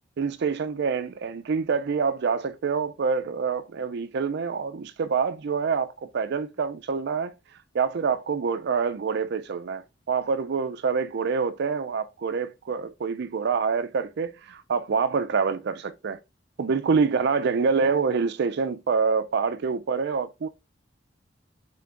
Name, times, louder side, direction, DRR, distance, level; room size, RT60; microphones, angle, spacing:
voice 1, 0.2-7.3 7.7-16.2 16.6-20.5, right 5 dB, 60° right, 0.4 m, -26 dB
3.8 x 3.7 x 3.4 m
head